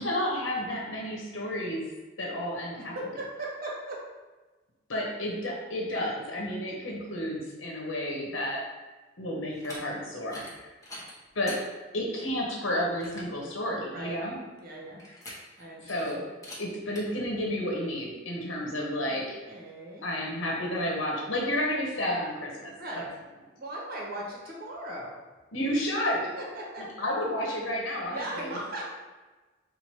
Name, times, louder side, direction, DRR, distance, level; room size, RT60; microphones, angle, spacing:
voice 1, 0.0-1.9 2.2-3.1 4.9-8.7 9.2-10.7 11.3-11.6 11.9-14.4 15.8-16.2 16.6-19.4 20.0-22.7 25.5-26.3 26.8-28.6, left 1 dB, 75° left, -2 dB, 1.0 m, -31 dB
voice 2, 2.7-4.0 13.9-14.2 14.6-15.0 15.6-16.2 19.1-20.2 22.8-23.1 23.6-25.1 26.0-26.8 28.1-28.8, right 1 dB, 50° right, -3 dB, 1.2 m, -38 dB
sound 1, 9.5-9.8 10.2-10.5 10.8-11.6 12.2-12.3 12.7-12.8 13.0-13.3 15.0-15.6 15.9-16.1 16.4-16.6 17.0-17.1, left 1 dB, 20° left, 0.9 m, -43 dB
4.3 x 2.6 x 4.6 m, 1.2 s
head